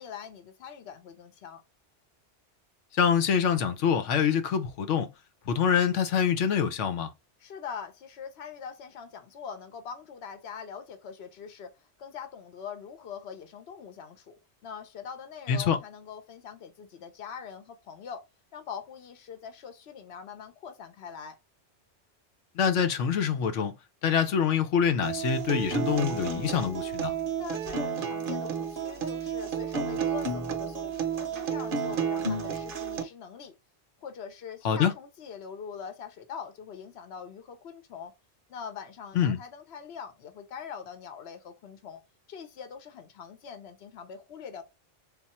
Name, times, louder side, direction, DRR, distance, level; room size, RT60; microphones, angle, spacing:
voice 1, 0.0-1.6 7.4-18.2 18.5-21.4 27.4-33.5 34.0-38.1 38.5-42.0 42.3-44.6, left 7 dB, 65° left, 1.0 m, -43 dB
voice 2, 3.0-5.1 5.5-7.1 15.5-15.8 22.6-23.7 24.0-27.1 34.6-34.9 39.1-39.4, left 7 dB, 90° left, 1.1 m, -25 dB
Acoustic guitar, 25.0-33.0, right 6 dB, 55° right, 0.8 m, -31 dB
3.6 x 2.5 x 4.2 m
omnidirectional pair, 1.2 m